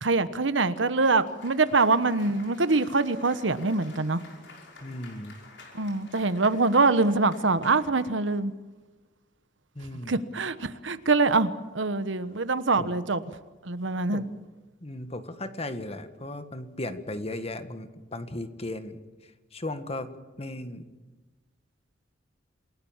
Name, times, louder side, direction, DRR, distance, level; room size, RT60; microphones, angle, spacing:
voice 1, 0.0-4.2 5.7-8.5 10.1-13.2 13.6-14.2, right 3 dB, 80° right, 12 dB, 1.2 m, -24 dB
Cheering / Applause, 0.7-8.4, left 3 dB, 70° left, 5.5 m, -51 dB
voice 2, 4.8-5.4 9.7-10.2 12.8-12.9 14.1-14.2 14.8-19.0 19.5-20.1 20.4-20.9, left 1 dB, 35° left, 9 dB, 1.7 m, -36 dB
28.0 x 17.5 x 7.4 m, 1.2 s
head